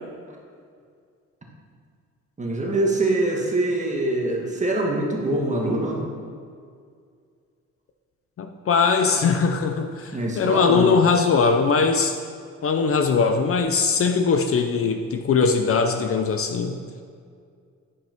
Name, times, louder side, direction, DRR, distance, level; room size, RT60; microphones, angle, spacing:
voice 1, 2.4-6.0 10.1-10.9, right 2 dB, 25° right, -1 dB, 1.6 m, -24 dB
voice 2, 8.4-12.1 12.6-16.8, left 5 dB, 50° left, 6 dB, 0.6 m, -21 dB
9.6 x 5.3 x 4.5 m, 2.2 s
cardioid pair, 90°, 30 cm